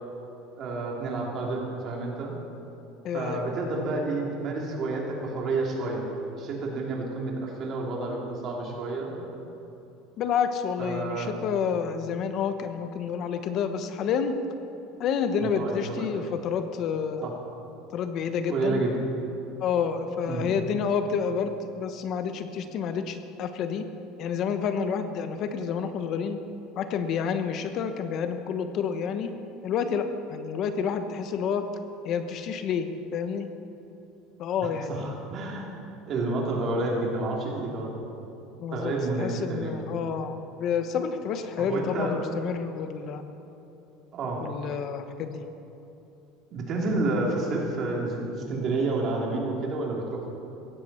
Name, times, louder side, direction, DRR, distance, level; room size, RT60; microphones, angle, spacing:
voice 1, 0.6-2.3 3.1-6.1 6.3-9.2 10.8-11.3 15.4-16.1 17.2-17.3 18.5-18.9 20.2-20.5 34.9-35.7 36.1-37.9 38.7-39.8 41.6-42.1 44.1-44.4 46.5-50.3, right 2 dB, 40° right, -1 dB, 3.3 m, -29 dB
voice 2, 3.0-3.5 10.2-14.4 15.0-17.3 17.9-18.8 19.6-23.8 24.2-26.4 26.8-29.3 29.6-31.7 32.0-33.5 34.4-35.2 38.6-43.2 44.4-45.5, left 6 dB, 50° left, 8 dB, 0.9 m, -29 dB
16.5 x 14.5 x 4.4 m, 3.0 s
supercardioid pair, 130°, 0 cm